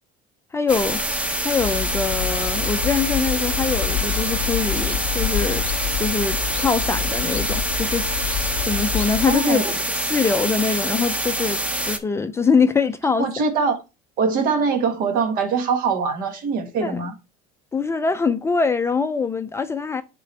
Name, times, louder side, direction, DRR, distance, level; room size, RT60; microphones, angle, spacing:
voice 1, 0.5-1.0 1.4-5.7 6.0-8.1 8.7-13.3 16.8-17.0 17.7-20.0, left 5 dB, 15° left, 0.4 m, -23 dB
sound 1, 0.7-12.0, right 1 dB, 5° right, 0.8 m, -26 dB
sound 2, 1.6-9.4, left 12 dB, 80° left, 0.6 m, -28 dB
voice 2, 9.3-9.7 13.2-13.8 14.2-17.1, right 5 dB, 55° right, 1.6 m, -22 dB
9.2 x 3.8 x 3.2 m
cardioid pair, 125°, 17 cm